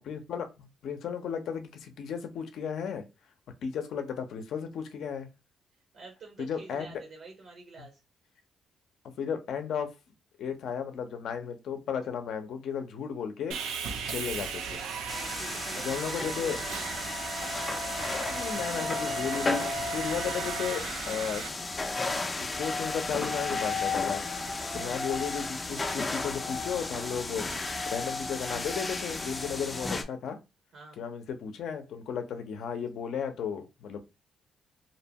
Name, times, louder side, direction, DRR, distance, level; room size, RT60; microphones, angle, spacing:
voice 1, 0.1-3.0 3.6-5.3 6.4-6.9 9.2-9.9 10.4-13.6 14.0-14.8 15.8-16.6 18.3-21.4 22.4-24.2 24.7-27.5 27.9-30.4 31.0-34.0, left 7 dB, 70° left, 0.6 m, -34 dB
voice 2, 5.9-8.0 15.4-16.8 24.6-24.9 30.7-31.0, right 3 dB, 65° right, 0.9 m, -48 dB
Sawing, 13.5-21.5, right 6 dB, 90° right, 0.4 m, -37 dB
sound 1, 15.1-30.0, left 3 dB, 25° left, 0.4 m, -33 dB
2.7 x 2.2 x 2.7 m
cardioid pair, 90°, 0 cm